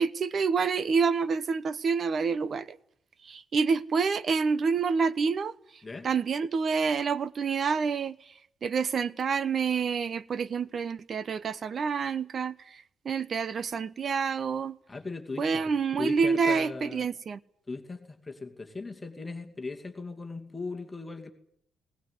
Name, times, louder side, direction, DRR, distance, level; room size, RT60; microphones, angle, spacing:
voice 1, 0.0-2.8 3.2-5.5 6.0-8.2 8.6-14.8 15.4-17.4, right 5 dB, 40° right, 1.0 m, -28 dB
voice 2, 14.9-15.7 16.0-17.0 17.7-21.3, left 3 dB, 15° left, 2.5 m, -38 dB
20.0 x 19.5 x 9.7 m
cardioid pair, 135°, 0 cm